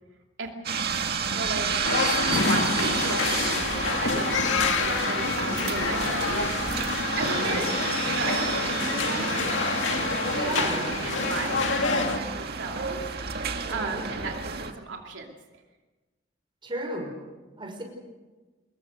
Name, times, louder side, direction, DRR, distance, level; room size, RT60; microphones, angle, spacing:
sound 1, 0.6-14.7, right 5 dB, 55° right, 2.0 m, -30 dB
voice 1, 1.3-1.8 2.2-6.5 7.2-7.7 8.1-15.3, right 3 dB, 90° right, 1 dB, 2.8 m, -36 dB
sound 2, 1.8-12.2, left 4 dB, 75° left, 2.3 m, -27 dB
voice 2, 7.3-7.7 10.3-10.9 13.7-14.1 16.6-17.8, right 2 dB, 25° right, 3 dB, 5.6 m, -34 dB
26.0 x 21.5 x 6.5 m, 1.2 s
head